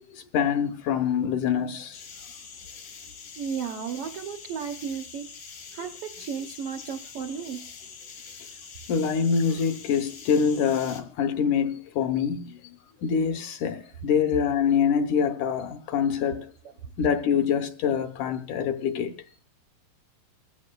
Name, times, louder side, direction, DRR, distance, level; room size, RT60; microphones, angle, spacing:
voice 1, 0.3-2.0 8.9-12.6 13.0-16.4 17.0-19.1, left 7 dB, 70° left, 2.2 m, -25 dB
sound 1, 1.9-11.0, left 5 dB, 90° left, 4.3 m, -44 dB
voice 2, 3.4-5.3 5.7-7.7, right 7 dB, 80° right, 1.3 m, -34 dB
28.0 x 15.0 x 2.3 m
omnidirectional pair, 4.0 m